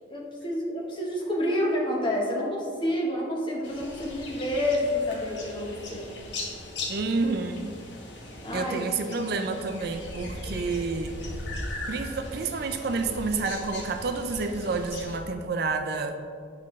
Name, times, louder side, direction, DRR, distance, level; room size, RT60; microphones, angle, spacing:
voice 1, 0.1-6.1 8.4-8.8, left 1 dB, 25° left, -2 dB, 1.1 m, -28 dB
sound 1, 3.6-15.2, left 1 dB, 65° left, 1.1 m, -39 dB
voice 2, 6.9-7.7 8.5-11.2 11.9-16.2, right 3 dB, 50° right, 6 dB, 0.4 m, -29 dB
8.7 x 5.3 x 3.1 m, 2.3 s
head